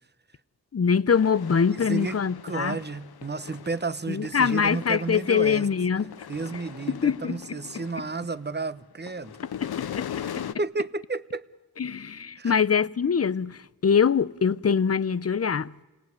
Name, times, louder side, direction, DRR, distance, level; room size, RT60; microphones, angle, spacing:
voice 1, 0.7-2.8 4.1-6.1 6.9-7.4 9.6-10.5 11.8-15.8, left 6 dB, 40° left, 0.8 m, -24 dB
sound 1, 1.1-8.6 8.9-10.5, left 9 dB, 85° left, 0.8 m, -40 dB
voice 2, 1.7-5.7 6.3-9.4 10.1-10.3 10.6-11.5 12.4-12.5, right 3 dB, 30° right, 1.1 m, -32 dB
29.0 x 19.0 x 9.7 m
cardioid pair, 55°, 36 cm